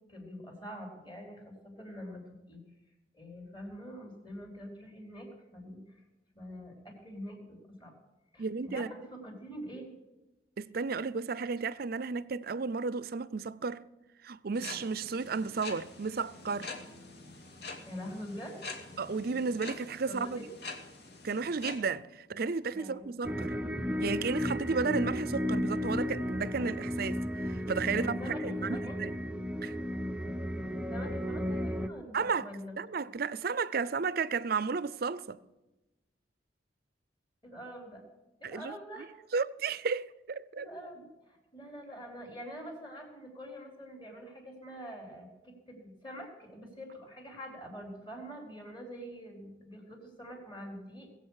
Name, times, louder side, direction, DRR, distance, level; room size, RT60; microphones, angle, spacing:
voice 1, 0.1-2.6 3.1-6.0 6.3-7.9 8.3-9.9 17.9-18.6 19.2-19.4 20.1-20.5 22.7-23.3 27.9-29.0 30.9-32.8 37.4-38.0 38.4-39.1 40.5-51.2, equal, 25° left, 4.2 m, -45 dB
voice 2, 8.4-8.9 10.6-13.9 14.2-16.7 19.0-20.4 21.2-23.5 24.0-29.2 29.6-29.7 32.1-32.5 32.8-35.4 38.4-38.7 39.3-40.7, right 5 dB, 55° right, 0.5 m, -33 dB
sound 1, 14.5-21.8, left 3 dB, 60° left, 2.3 m, -45 dB
sound 2, 23.2-31.9, left 1 dB, 5° right, 0.5 m, -34 dB
20.5 x 8.1 x 6.5 m
head